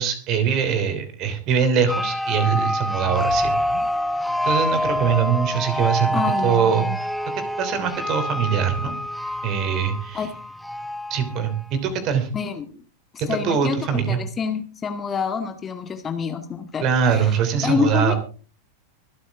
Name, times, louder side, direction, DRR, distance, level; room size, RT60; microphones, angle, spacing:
voice 1, 0.0-3.8 4.4-6.9 7.6-8.9 9.4-10.3 11.1-12.3 13.2-14.2 16.8-18.1, right 7 dB, 40° right, 10 dB, 3.0 m, -22 dB
sound 1, 1.9-11.6, equal, 5° left, 0.7 m, -26 dB
voice 2, 6.1-7.0 10.1-10.3 12.3-12.8 13.1-17.3 17.6-18.1, left 6 dB, 20° left, 7 dB, 1.9 m, -27 dB
24.5 x 8.6 x 3.6 m, 0.38 s
figure-of-eight pair, 90°, 0 cm